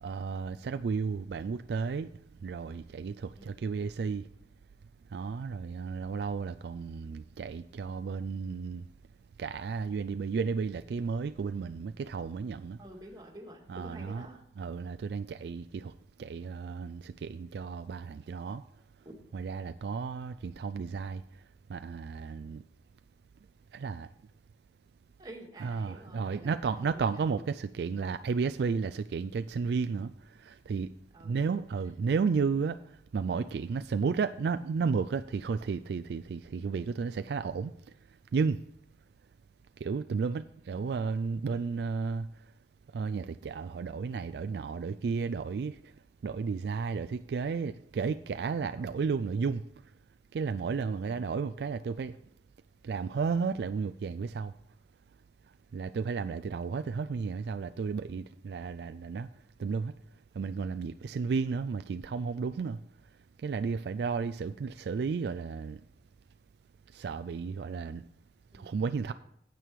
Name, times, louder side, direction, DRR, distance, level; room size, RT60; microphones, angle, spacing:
voice 1, 0.0-2.1 2.4-4.3 5.1-8.9 9.4-12.8 13.7-14.2 14.6-15.9 16.2-18.6 19.3-21.2 21.7-22.6 23.7-24.1 25.6-30.9 31.2-37.7 38.3-38.6 39.8-42.3 42.9-45.9 46.2-49.6 50.3-52.2 52.8-54.5 55.7-59.3 59.6-59.9 60.3-62.8 63.4-65.8 66.9-68.0 68.5-69.1, right 5 dB, 70° right, 0.3 m, -33 dB
voice 2, 12.8-14.4 19.0-19.2 25.2-26.6 26.9-27.5 31.1-31.6 48.8-48.9 68.5-69.1, right 1 dB, 25° right, 2.0 m, -49 dB
9.1 x 8.4 x 4.7 m
head